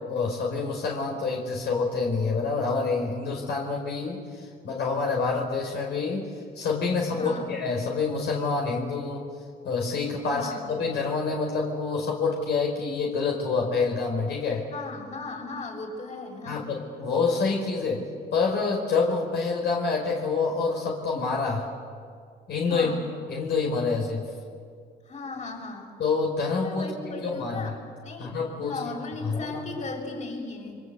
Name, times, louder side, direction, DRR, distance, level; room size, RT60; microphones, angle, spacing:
voice 1, 0.1-6.3 6.5-9.2 9.6-14.6 16.5-18.0 18.3-21.7 22.5-22.9 23.3-24.3 26.0-26.8 27.2-27.7 28.2-28.8 29.2-29.6, left 4 dB, 70° left, -1 dB, 5.1 m, -27 dB
voice 2, 7.1-7.5 10.3-10.7 14.7-16.7 22.7-23.1 25.1-25.9 26.6-27.8 28.0-30.8, left 3 dB, 40° left, 2 dB, 7.2 m, -36 dB
29.5 x 24.5 x 8.3 m, 2.1 s
cardioid pair, 95°, 18 cm